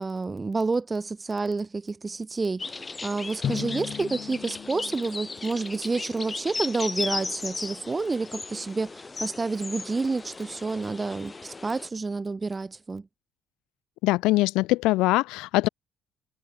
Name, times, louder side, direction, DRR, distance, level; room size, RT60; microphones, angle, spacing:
voice 1, 0.0-13.1, right 3 dB, 25° right, 0.6 m, -29 dB
sound 1, 2.6-11.9, left 3 dB, 25° left, 1.2 m, -36 dB
Drum, 3.4-6.2, left 8 dB, 55° left, 1.5 m, -36 dB
voice 2, 14.0-15.7, left 20 dB, 80° left, 0.4 m, -22 dB
supercardioid pair, 75°, 0 cm